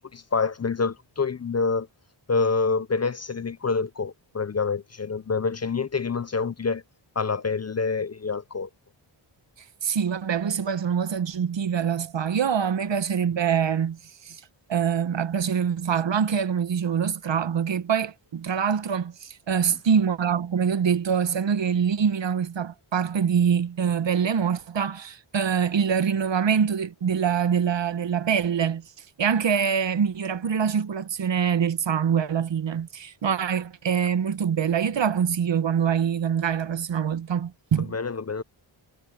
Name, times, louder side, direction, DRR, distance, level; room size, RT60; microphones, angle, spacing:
voice 1, 0.1-1.9 2.3-6.8 7.2-8.7 37.9-38.4, left 4 dB, 35° left, 0.6 m, -27 dB
voice 2, 9.8-14.4 14.7-28.8 29.2-37.9, right 7 dB, 65° right, 1.1 m, -24 dB
wide cardioid pair, 115°, 48 cm